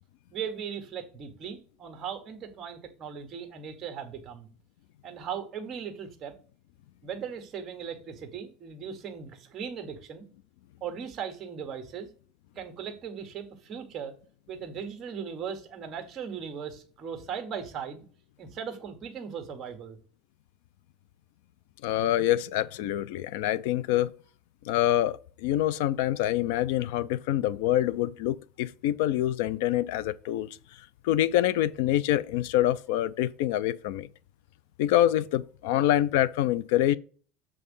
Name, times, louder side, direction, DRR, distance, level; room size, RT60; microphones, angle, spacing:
voice 1, 0.3-4.5 5.0-6.3 7.0-10.3 10.8-12.1 12.5-14.1 14.5-18.0 18.4-20.0, right 7 dB, 25° right, 1.4 m, -38 dB
voice 2, 21.8-24.1 24.7-30.5 31.0-34.1 34.8-37.0, left 13 dB, 70° left, 0.5 m, -26 dB
7.6 x 3.6 x 5.4 m
cardioid pair, 170°, 0 cm